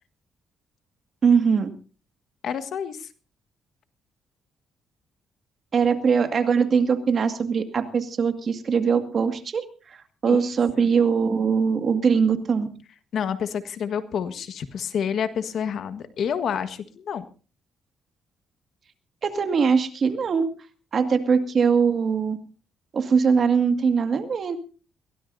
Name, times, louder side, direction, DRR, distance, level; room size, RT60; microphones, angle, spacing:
voice 1, 1.2-1.7 5.7-10.0 10.2-12.7 19.2-20.5 20.9-22.4 22.9-24.6, right 6 dB, 50° right, 7 dB, 2.1 m, -21 dB
voice 2, 2.4-3.1 10.3-10.4 10.8-10.9 13.1-17.3, left 7 dB, 65° left, 10 dB, 1.5 m, -29 dB
22.0 x 16.5 x 2.7 m, 0.37 s
cardioid pair, 90°, 0 cm